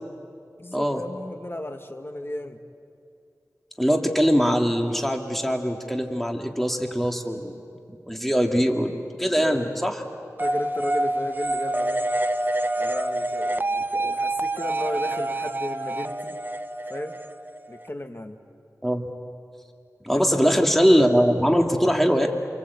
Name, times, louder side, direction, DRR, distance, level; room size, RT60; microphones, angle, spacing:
voice 1, 0.6-2.6 9.1-9.8 10.4-12.0 12.8-16.4 16.9-17.2 17.7-18.4 20.1-20.5, left 1 dB, 40° left, 6 dB, 1.9 m, -34 dB
voice 2, 3.8-7.5 7.9-8.9 9.2-9.9 14.0-14.1 18.8-19.0 20.0-22.3, equal, 5° left, 3 dB, 2.4 m, -22 dB
sound 1, 10.4-17.9, right 1 dB, 30° right, 0.9 m, -27 dB
28.5 x 24.0 x 8.4 m, 2.4 s
wide cardioid pair, 50°, 6 cm